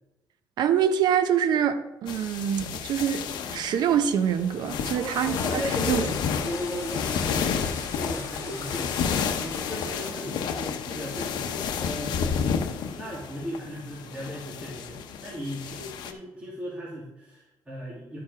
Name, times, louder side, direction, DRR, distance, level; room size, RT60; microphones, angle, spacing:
voice 1, 0.6-3.2 3.5-5.6 5.9-6.0, right 8 dB, 70° right, 0.8 m, -25 dB
sound 1, 2.1-16.1, left 7 dB, 85° left, 0.8 m, -31 dB
voice 2, 4.9-6.1 6.4-12.4 12.9-18.2, equal, 15° right, 2.4 m, -36 dB
sound 2, 5.1-10.1, left 5 dB, 50° left, 2.0 m, -40 dB
12.0 x 4.8 x 4.9 m
cardioid pair, 140°, 7 cm